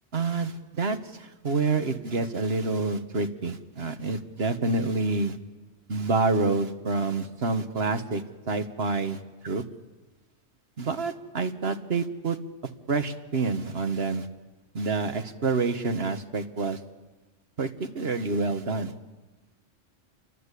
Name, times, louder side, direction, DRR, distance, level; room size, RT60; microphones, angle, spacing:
voice 1, 0.1-5.4 5.9-9.6 10.8-12.4 12.9-14.3 14.7-16.8 17.6-18.9, right 3 dB, 55° right, 9 dB, 1.6 m, -28 dB
30.0 x 24.0 x 8.4 m, 1.2 s
omnidirectional pair, 1.3 m